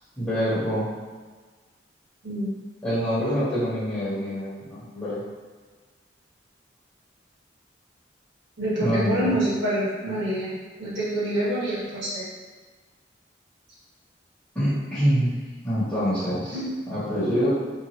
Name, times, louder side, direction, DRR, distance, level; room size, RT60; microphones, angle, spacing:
voice 1, 0.2-0.9 2.8-5.2 8.8-9.3 14.5-15.4 15.6-16.6 16.9-17.5, equal, 10° left, -14 dB, 1.1 m, -25 dB
voice 2, 8.6-10.5 10.8-12.2 16.5-16.6, right 1 dB, 90° right, -10 dB, 1.3 m, -26 dB
2.9 x 2.5 x 2.6 m, 1.4 s
head